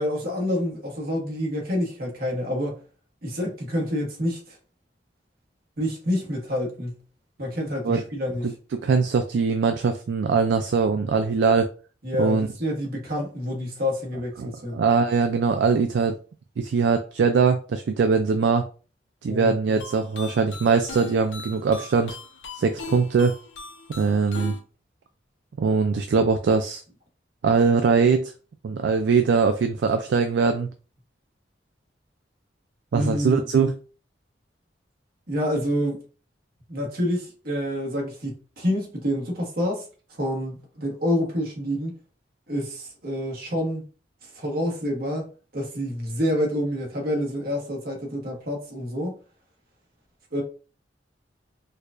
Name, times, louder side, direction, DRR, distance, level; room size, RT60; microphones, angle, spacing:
voice 1, 0.0-2.8 3.2-4.6 5.8-7.0 7.4-8.5 12.0-14.8 19.3-19.6 32.9-33.4 35.3-36.0 36.7-41.9 42.5-43.8 44.2-49.2 50.3-50.4, equal, 55° right, 1.2 m, -28 dB
voice 2, 8.8-11.7 12.2-12.5 14.4-16.2 16.6-18.7 19.2-22.2 22.5-23.3 24.0-24.5 25.6-26.8 27.4-28.3 28.6-30.7 32.9-33.7, right 5 dB, 70° right, 0.3 m, -21 dB
sound 1, 19.8-24.6, left 3 dB, 80° left, 0.6 m, -40 dB
4.5 x 2.3 x 2.5 m
head